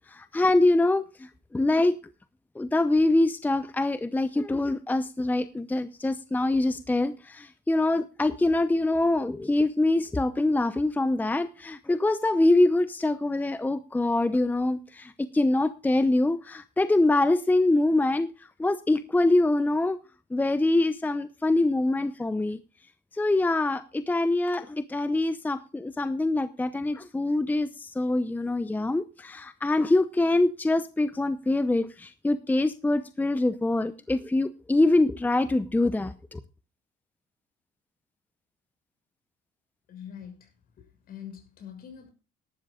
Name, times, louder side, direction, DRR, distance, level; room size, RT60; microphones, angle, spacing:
voice 1, 0.1-2.0 2.6-20.0 20.3-22.6 23.1-36.4, left 2 dB, 10° left, 12 dB, 0.7 m, -24 dB
voice 2, 39.9-40.5 40.8-42.1, left 8 dB, 60° left, 5 dB, 6.2 m, -44 dB
18.0 x 12.5 x 2.4 m, 0.32 s
cardioid pair, 110°, 17 cm